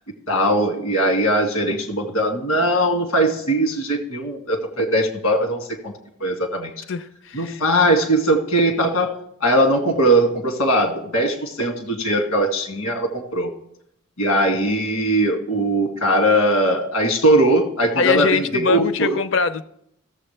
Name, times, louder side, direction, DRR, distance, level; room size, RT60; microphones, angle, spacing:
voice 1, 0.3-5.9 6.2-6.7 7.3-9.1 9.4-13.5 14.2-19.2, right 1 dB, 90° left, 2.2 m, -20 dB
voice 2, 6.9-7.6 18.0-19.6, left 5 dB, 55° left, 0.6 m, -22 dB
16.0 x 7.3 x 3.3 m
head